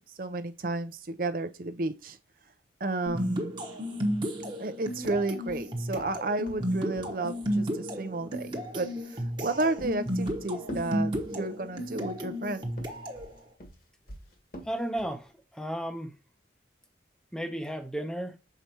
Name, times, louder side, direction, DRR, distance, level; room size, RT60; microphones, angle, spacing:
voice 1, 0.2-2.2 2.8-3.6 4.6-12.7, right 2 dB, 50° right, 0.7 m, -32 dB
sound 1, 3.1-13.3, equal, 25° right, 1.1 m, -33 dB
sound 2, 5.0-7.6 9.3-11.7 12.6-15.2, right 1 dB, 50° left, 1.5 m, -45 dB
voice 2, 14.6-16.2 17.3-18.4, right 1 dB, 5° left, 0.7 m, -34 dB
6.8 x 4.7 x 2.9 m
head